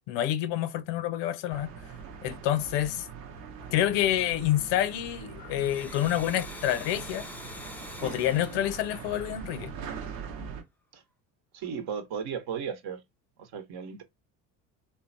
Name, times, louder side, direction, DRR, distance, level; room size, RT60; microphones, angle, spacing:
voice 1, 0.1-1.7 2.2-3.1 3.7-7.3 8.0-9.7, left 12 dB, 60° left, 0.6 m, -28 dB
sound 1, 1.5-10.6, right 6 dB, 85° right, 1.0 m, -42 dB
Domestic sounds home sounds, 5.4-9.9, left 2 dB, 5° left, 0.5 m, -45 dB
voice 2, 11.5-13.0 13.4-14.0, right 7 dB, 50° right, 1.0 m, -35 dB
3.7 x 2.2 x 2.5 m
hypercardioid pair, 65°, 48 cm